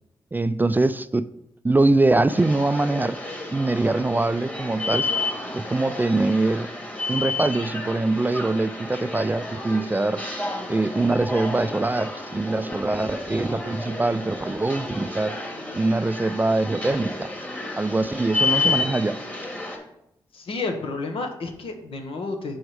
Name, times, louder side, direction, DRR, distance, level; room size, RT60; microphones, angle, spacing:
voice 1, 0.3-1.3 1.6-3.2 3.5-5.1 5.5-6.7 7.1-10.2 10.7-15.3 15.7-17.3 17.8-19.2, right 2 dB, 20° right, 13 dB, 0.3 m, -23 dB
sound 1, 2.3-19.8, left 2 dB, 15° left, 2.0 m, -31 dB
voice 2, 20.3-22.6, left 3 dB, 75° left, 5 dB, 1.1 m, -31 dB
6.2 x 4.7 x 4.8 m, 0.78 s
supercardioid pair, 50°, 10 cm